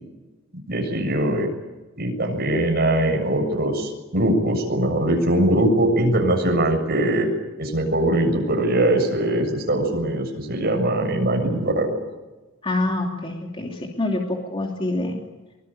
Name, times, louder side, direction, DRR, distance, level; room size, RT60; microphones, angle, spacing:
voice 1, 0.7-1.5 2.0-7.3 7.6-12.0, right 1 dB, 50° right, 2 dB, 7.3 m, -21 dB
voice 2, 12.6-15.2, left 2 dB, 25° left, 1 dB, 3.0 m, -26 dB
24.0 x 21.5 x 8.9 m, 1.2 s
head